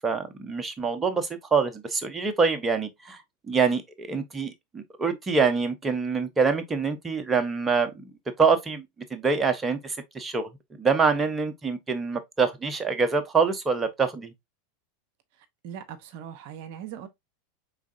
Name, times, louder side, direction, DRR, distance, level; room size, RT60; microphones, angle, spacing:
voice 1, 0.0-3.2 3.5-8.0 8.4-8.9 9.1-10.5 10.8-14.3, right 5 dB, 20° right, 0.9 m, -25 dB
voice 2, 15.4-17.1, right 9 dB, 55° right, 0.7 m, -40 dB
4.9 x 3.6 x 2.6 m
figure-of-eight pair, 85°, 0 cm